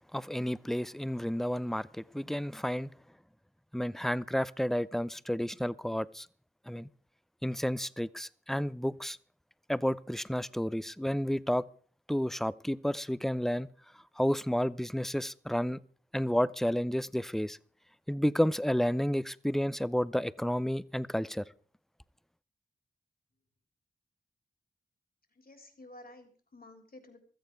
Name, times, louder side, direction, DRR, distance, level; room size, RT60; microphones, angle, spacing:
voice 1, 0.1-2.9 3.7-6.3 6.7-6.9 7.4-9.2 9.7-11.6 12.1-13.7 14.2-15.8 16.1-17.6 18.1-21.4, equal, ahead, 0.6 m, -31 dB
voice 2, 25.3-27.2, left 1 dB, 55° left, 3.6 m, -52 dB
16.0 x 13.5 x 4.7 m
cardioid pair, 45°, 18 cm